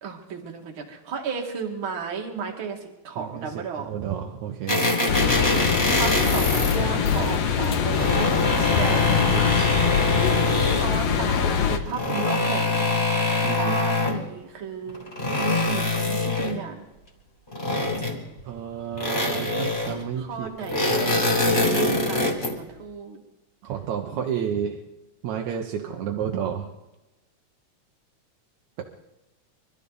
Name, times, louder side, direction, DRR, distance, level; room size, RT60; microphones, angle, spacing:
voice 1, 0.0-2.8 3.0-3.9 5.9-9.2 10.7-12.9 13.5-15.1 15.7-16.9 20.2-23.2, right 6 dB, 45° right, 2 dB, 2.6 m, -34 dB
voice 2, 3.2-4.8 8.7-9.8 13.4-13.8 18.5-20.5 20.9-21.9 23.6-24.8 25.2-26.7, right 8 dB, 75° right, 1 dB, 2.4 m, -31 dB
sound 1, 4.7-6.8 7.7-11.0 11.8-14.2 14.9-16.6 17.5-18.4 19.0-20.0 20.6-22.6, left 2 dB, 15° left, 2.7 m, -24 dB
sound 2, 5.1-11.8, left 7 dB, 65° left, 2.1 m, -23 dB
24.5 x 13.5 x 4.1 m, 1.0 s
omnidirectional pair, 3.4 m